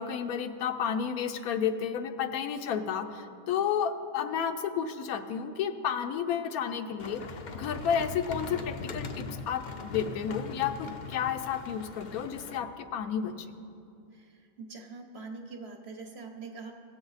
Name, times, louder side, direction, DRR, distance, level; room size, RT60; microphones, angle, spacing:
voice 1, 0.0-7.2 7.5-13.5, left 8 dB, 80° left, 8 dB, 1.1 m, -31 dB
sound 1, 7.0-12.6, left 3 dB, 55° left, 0.5 m, -40 dB
voice 2, 14.1-16.7, right 4 dB, 55° right, 3 dB, 0.9 m, -44 dB
17.0 x 7.1 x 4.0 m, 2.6 s
omnidirectional pair, 1.5 m